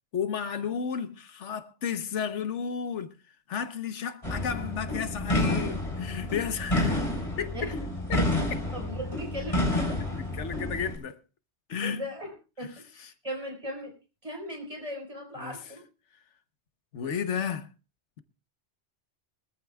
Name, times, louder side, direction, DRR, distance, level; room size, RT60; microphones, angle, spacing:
voice 1, 0.1-3.2 3.5-7.0 7.4-7.8 8.1-8.2 10.2-11.2 11.7-12.0 13.0-13.1 15.4-15.6 16.9-17.7, left 7 dB, 90° left, 1.3 m, -32 dB
sound 1, 4.2-10.9, left 1 dB, 30° left, 3.9 m, -29 dB
voice 2, 8.7-10.0 11.8-13.9 14.2-15.8, equal, 30° right, 4.8 m, -38 dB
23.5 x 14.0 x 2.3 m
omnidirectional pair, 1.2 m